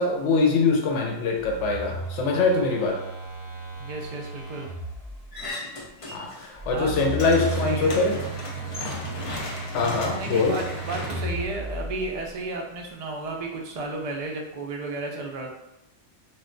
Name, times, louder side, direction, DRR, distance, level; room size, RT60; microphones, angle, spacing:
voice 1, 0.0-3.0 6.1-8.2 9.7-10.5, left 3 dB, 75° left, 1 dB, 0.9 m, -23 dB
Telephone, 1.4-5.4 6.6-12.3, right 2 dB, 35° right, 0.8 m, -35 dB
voice 2, 3.8-4.7 6.7-7.9 10.2-15.5, right 2 dB, 55° right, 0 dB, 0.4 m, -33 dB
sound 1, 5.3-6.5 6.8-12.1, left 2 dB, 60° left, 0.3 m, -35 dB
2.3 x 2.2 x 3.7 m, 0.86 s
omnidirectional pair, 1.2 m